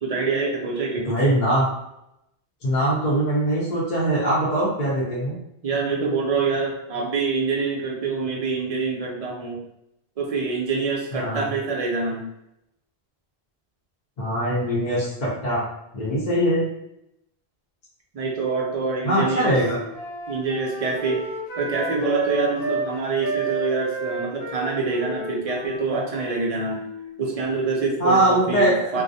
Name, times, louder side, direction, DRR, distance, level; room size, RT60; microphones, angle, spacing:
voice 1, 0.0-1.2 5.6-9.6 10.2-12.3 18.1-19.6 20.3-21.2 21.6-26.8 27.2-29.0, right 4 dB, 50° right, -2 dB, 0.4 m, -25 dB
voice 2, 1.0-1.7 2.6-5.4 11.1-11.4 14.2-15.6 15.9-16.7 19.0-19.8 28.0-28.9, right 1 dB, 50° left, -7 dB, 0.7 m, -22 dB
Wind instrument woodwind instrument, 18.9-22.9 23.2-27.7, right 4 dB, 85° left, 0.9 m, -31 dB
2.3 x 2.0 x 2.6 m, 0.82 s
omnidirectional pair, 1.1 m